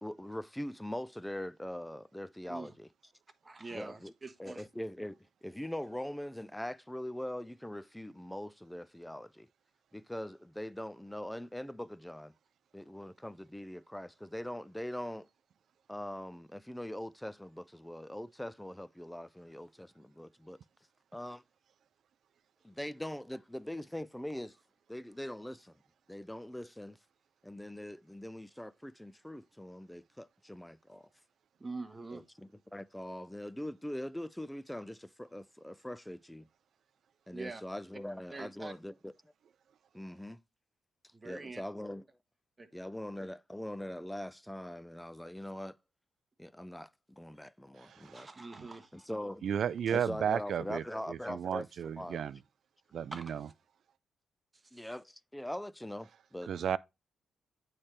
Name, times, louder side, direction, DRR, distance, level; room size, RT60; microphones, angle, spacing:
voice 1, 0.0-2.9 3.7-4.1 4.4-9.5 9.9-12.3 12.7-15.3 15.9-20.6 21.1-21.4 22.6-24.6 24.9-25.7 26.1-27.0 27.4-31.1 32.1-36.5 37.3-39.1 39.9-40.4 41.2-42.1 42.7-45.8 46.4-48.3 48.9-49.4 49.9-52.3 54.7-56.5, left 1 dB, 5° left, 0.4 m, -42 dB
voice 2, 3.4-4.7 31.6-32.2 37.3-37.6 38.3-38.7 41.1-41.6 42.6-42.7 48.1-49.1 49.9-50.0 53.1-53.4 54.7-54.9, right 3 dB, 25° right, 1.0 m, -44 dB
voice 3, 49.4-52.4 52.9-53.4 56.5-56.8, right 8 dB, 65° right, 0.3 m, -33 dB
8.7 x 3.3 x 4.3 m
cardioid pair, 85°, 0 cm